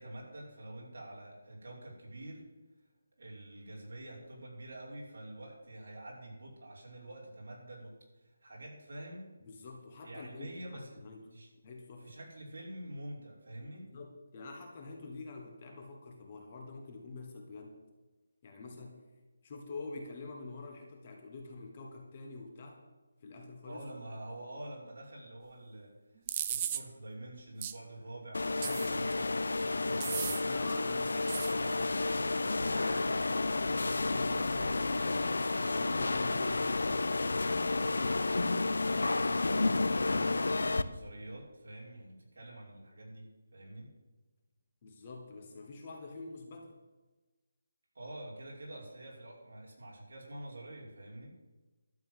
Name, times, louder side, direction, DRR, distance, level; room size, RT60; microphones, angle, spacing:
voice 1, 0.0-2.4 3.2-9.3 10.0-10.9 11.3-11.5 12.0-13.9 23.6-30.5 38.8-43.9 47.9-51.3, right 1 dB, 50° right, -3 dB, 5.3 m, -47 dB
voice 2, 9.4-11.2 11.6-12.1 13.9-17.8 18.4-19.0 19.4-22.8 23.2-23.8 28.6-29.1 30.5-33.1 33.8-37.9 44.8-46.8, left 3 dB, 20° left, 2 dB, 1.4 m, -46 dB
sound 1, 26.3-26.8 27.6-27.8 28.6-29.1 30.0-30.4 31.3-31.5, right 10 dB, 15° right, 0.4 m, -35 dB
sound 2, 28.3-40.8, left 3 dB, 85° left, 0.8 m, -31 dB
12.5 x 7.3 x 9.3 m, 1.2 s
hypercardioid pair, 180°, 0 cm